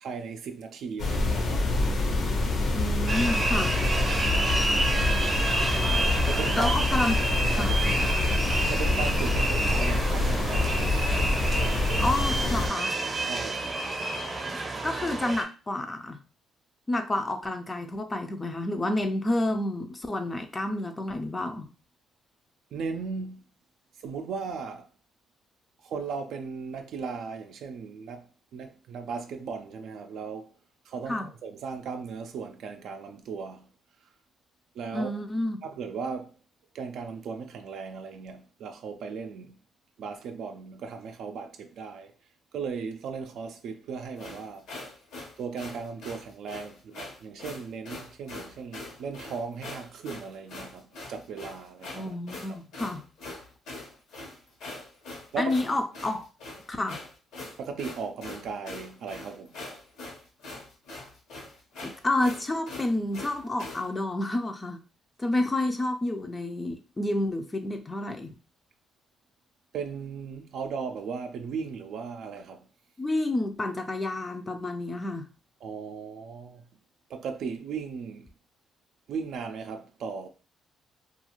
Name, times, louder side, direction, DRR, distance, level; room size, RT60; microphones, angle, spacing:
voice 1, 0.0-1.7 4.1-4.2 6.2-7.0 7.5-7.8 8.7-11.0 13.2-13.6 22.7-23.4 24.0-24.9 25.8-28.3 28.5-30.5 30.9-33.7 34.7-35.1 35.6-36.3 36.7-39.5 40.0-42.1 42.5-44.7 45.4-52.2 52.4-52.6 55.3-55.5 57.6-59.6 69.7-72.7 75.6-76.6 77.1-78.3 79.1-80.3, right 5 dB, 75° right, 0.3 m, -37 dB
sound 1, 1.0-12.7, left 2 dB, 70° left, 0.6 m, -26 dB
voice 2, 2.7-3.8 6.6-7.2 7.4-7.7 11.9-13.0 14.8-16.2 16.9-21.7 31.1-31.3 34.9-35.6 51.9-53.0 55.4-56.3 56.7-57.0 61.8-64.8 65.2-68.4 73.0-75.3, left 1 dB, 20° left, 0.4 m, -29 dB
sound 2, 3.1-15.4, right 2 dB, 30° right, 0.6 m, -29 dB
sound 3, 44.2-63.9, left 2 dB, 85° left, 1.0 m, -42 dB
2.4 x 2.3 x 2.9 m
cardioid pair, 90°, 0 cm